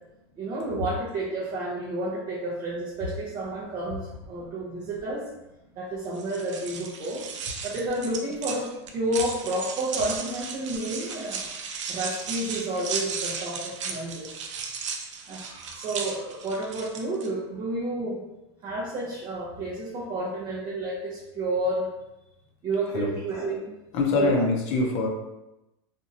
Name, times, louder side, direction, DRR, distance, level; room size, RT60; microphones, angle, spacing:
voice 1, 0.4-5.2 5.8-7.2 7.6-11.4 11.9-14.3 15.3-18.2 18.6-21.9 22.6-23.7 24.1-24.4, right 1 dB, 25° right, -7 dB, 0.7 m, -30 dB
sound 1, 6.1-17.3, right 5 dB, 85° right, 0.5 m, -35 dB
voice 2, 23.9-25.1, left 3 dB, 40° left, 0 dB, 0.7 m, -24 dB
2.8 x 2.5 x 2.5 m, 0.95 s
supercardioid pair, 140°, 15 cm